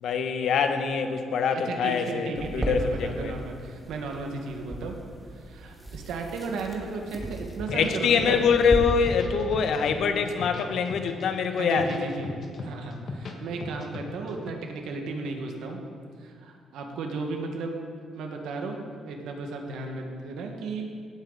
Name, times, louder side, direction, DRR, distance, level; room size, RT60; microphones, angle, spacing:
voice 1, 0.0-3.3 7.7-11.9, left 6 dB, 70° left, 7 dB, 1.1 m, -24 dB
voice 2, 1.5-5.0 5.4-8.4 11.6-12.3 12.6-15.8 16.2-17.8 18.1-20.9, right 3 dB, 80° right, 2 dB, 1.7 m, -34 dB
sound 1, 2.4-8.8, right 2 dB, 10° right, 1.9 m, -37 dB
sound 2, 7.5-8.5 8.9-10.0 10.3-11.2 11.6-13.3 13.6-14.5, left 3 dB, 50° left, 1.5 m, -37 dB
17.5 x 8.6 x 4.0 m, 2.3 s
cardioid pair, 90°, 0 cm